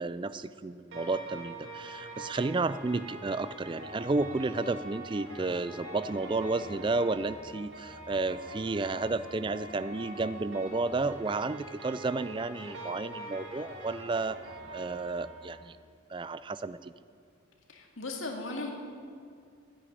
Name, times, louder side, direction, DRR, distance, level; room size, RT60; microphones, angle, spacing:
voice 1, 0.0-14.4 14.7-15.7 16.1-16.9, right 3 dB, 25° right, 15 dB, 0.3 m, -32 dB
sound 1, 0.9-15.6, right 1 dB, 60° right, 2.7 m, -44 dB
voice 2, 17.7-18.7, left 2 dB, 70° left, 2 dB, 2.1 m, -37 dB
10.0 x 10.0 x 9.8 m, 2.3 s
head